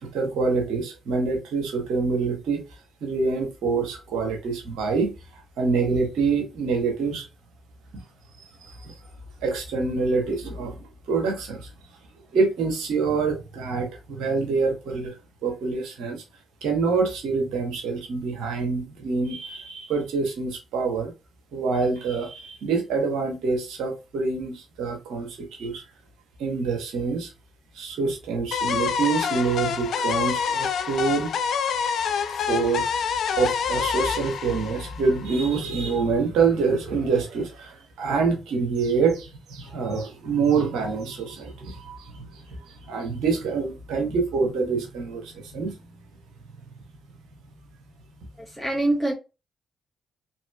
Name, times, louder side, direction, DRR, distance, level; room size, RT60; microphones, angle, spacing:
voice 1, 0.0-2.6 3.0-7.3 7.9-8.0 8.4-8.9 9.4-11.7 12.3-16.2 16.6-21.1 21.5-25.8 26.4-27.3 27.7-31.3 32.5-32.9 33.3-45.8 46.6-47.0 47.5-47.7 48.1-48.4, right 4 dB, 80° right, 1.0 m, -26 dB
sound 1, 28.5-35.5, left 7 dB, 70° left, 0.3 m, -27 dB
voice 2, 48.4-49.1, right 1 dB, 10° right, 1.1 m, -24 dB
3.0 x 2.9 x 2.2 m
hypercardioid pair, 45°, 0 cm